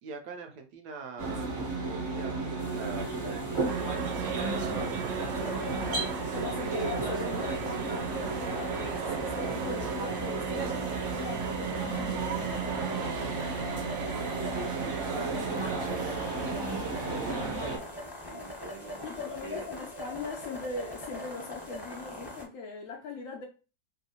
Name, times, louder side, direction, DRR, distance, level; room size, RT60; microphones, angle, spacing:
voice 1, 0.0-1.5 1.9-4.9 5.2-5.3 5.6-6.1 14.5-17.6 18.3-19.7, right 4 dB, 70° right, 1.0 m, -44 dB
sound 1, 1.2-17.8, right 3 dB, 50° right, 0.9 m, -33 dB
sound 2, 2.6-22.4, left 1 dB, 25° left, 0.5 m, -44 dB
sound 3, 3.7-16.6, right 8 dB, 90° right, 1.3 m, -37 dB
voice 2, 4.4-4.9 5.4-12.6 19.0-23.5, left 4 dB, 85° left, 0.7 m, -40 dB
3.1 x 2.6 x 2.8 m
omnidirectional pair, 2.0 m